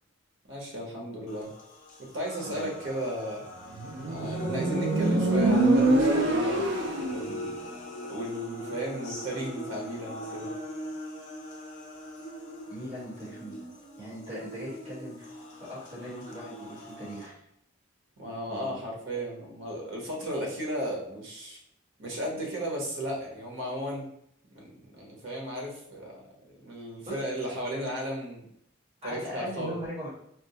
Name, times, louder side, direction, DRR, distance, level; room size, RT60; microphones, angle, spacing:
voice 1, 0.5-1.5 2.0-3.5 4.1-7.5 8.1-10.5 18.2-21.6 22.0-24.0 24.5-28.5 29.0-29.8, right 1 dB, 80° right, -1 dB, 1.0 m, -35 dB
sound 1, 1.3-17.3, left 1 dB, 40° left, 0.6 m, -40 dB
voice 2, 2.5-2.8 12.7-13.7 14.0-17.4 18.5-18.8 27.1-27.2 29.0-30.1, equal, 35° right, -10 dB, 1.4 m, -40 dB
Motorcycle, 3.8-7.3, right 2 dB, 60° right, 0.4 m, -24 dB
4.2 x 2.0 x 2.7 m, 0.72 s
head